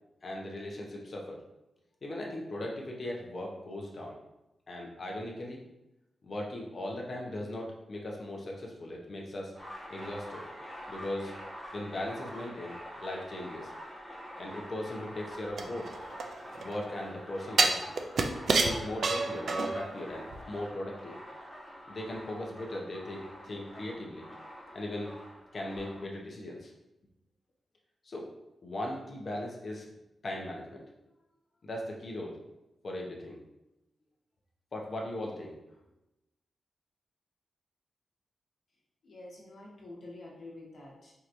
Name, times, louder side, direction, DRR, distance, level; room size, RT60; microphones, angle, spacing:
voice 1, 0.2-1.4 2.0-4.2 4.7-5.6 6.2-9.5 9.9-10.4 10.9-11.3 11.7-13.7 14.4-15.9 16.5-17.8 18.6-21.2 21.8-24.3 24.7-25.1 25.5-26.7 28.0-28.3 28.6-29.9 30.2-30.8 31.6-32.4 32.8-33.4 34.7-35.6, left 1 dB, 35° left, -1 dB, 0.7 m, -38 dB
sound 1, 9.5-26.1, equal, ahead, 1.2 m, -46 dB
sound 2, 15.6-16.7 17.6-19.9 20.3-20.4, right 4 dB, 55° right, 0.3 m, -28 dB
voice 2, 39.0-41.1, left 2 dB, 60° left, -4 dB, 1.1 m, -47 dB
4.6 x 2.9 x 2.6 m, 0.94 s
wide cardioid pair, 170°, 0 cm